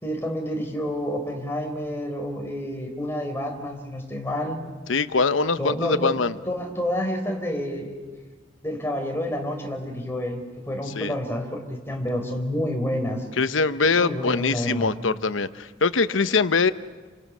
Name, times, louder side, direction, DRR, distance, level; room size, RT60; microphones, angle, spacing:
voice 1, 0.0-4.6 5.6-6.2 6.5-8.0 8.6-13.3 13.9-14.9, equal, 15° left, 2 dB, 3.9 m, -29 dB
voice 2, 4.9-6.3 11.0-11.2 13.4-16.7, left 4 dB, 90° left, 13 dB, 0.9 m, -23 dB
29.5 x 25.0 x 6.3 m, 1.4 s
head